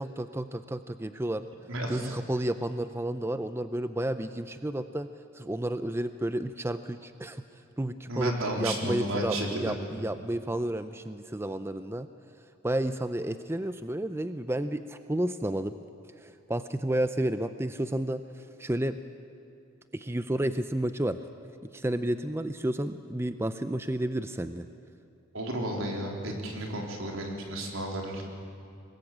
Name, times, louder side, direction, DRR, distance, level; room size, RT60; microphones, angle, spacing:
voice 1, 0.0-1.5 1.9-5.1 5.3-7.4 7.8-12.1 12.6-15.7 16.2-18.2 18.6-19.0 19.9-21.2 21.7-24.7, right 1 dB, 10° right, 10 dB, 0.5 m, -31 dB
voice 2, 1.7-2.1 8.1-9.7 25.3-28.2, right 1 dB, 75° right, 1 dB, 4.0 m, -32 dB
23.5 x 21.0 x 8.7 m, 2.6 s
head